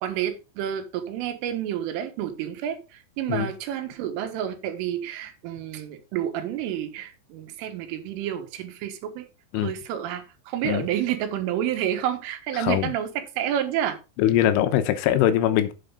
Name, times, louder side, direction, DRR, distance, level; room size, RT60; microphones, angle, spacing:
voice 1, 0.0-9.3 9.6-14.0, right 10 dB, 90° right, 3.9 m, -29 dB
voice 2, 12.6-12.9 14.2-15.7, left 11 dB, 85° left, 3.4 m, -22 dB
9.0 x 7.7 x 3.8 m
omnidirectional pair, 5.6 m